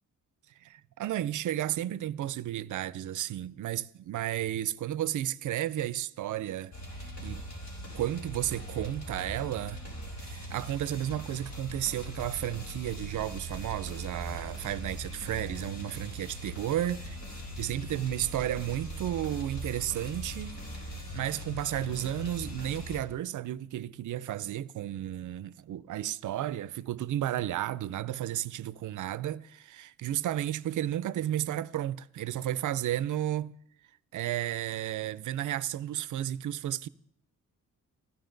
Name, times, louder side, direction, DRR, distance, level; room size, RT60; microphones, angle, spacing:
voice 1, 0.6-7.4 7.9-9.8 10.2-17.0 17.6-20.6 21.1-33.6 34.1-36.9, right 12 dB, 65° right, 0.5 m, -33 dB
sound 1, 6.7-23.0, right 1 dB, 60° left, 4.2 m, -40 dB
15.0 x 14.5 x 3.9 m
wide cardioid pair, 150°, 32 cm